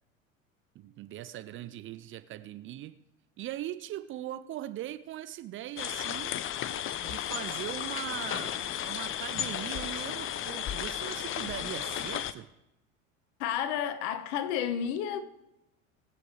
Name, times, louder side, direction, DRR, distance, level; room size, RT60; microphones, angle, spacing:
voice 1, 0.7-2.9 3.4-6.3 7.0-12.5, right 13 dB, 30° right, 0.6 m, -40 dB
sound 1, 5.8-12.3, left 10 dB, 30° left, 0.8 m, -34 dB
voice 2, 13.4-15.2, left 9 dB, 55° left, 1.2 m, -31 dB
22.5 x 7.7 x 3.3 m
figure-of-eight pair, 75°, 40 cm